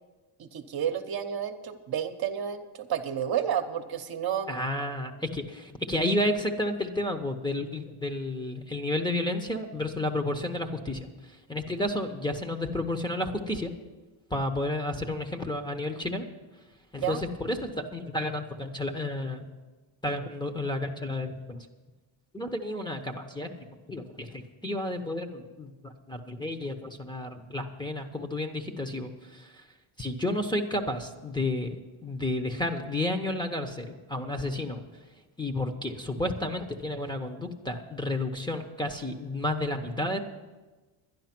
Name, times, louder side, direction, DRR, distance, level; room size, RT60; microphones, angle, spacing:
voice 1, 0.4-4.5 17.0-17.2, right 9 dB, 50° right, 6 dB, 1.0 m, -31 dB
voice 2, 4.5-11.1 11.5-13.7 14.3-16.3 16.9-19.5 20.0-21.7 22.3-23.5 23.9-29.6 30.0-34.9 35.4-40.2, left 1 dB, 10° left, 6 dB, 0.9 m, -31 dB
11.5 x 10.5 x 6.0 m, 1.2 s
cardioid pair, 115°, 48 cm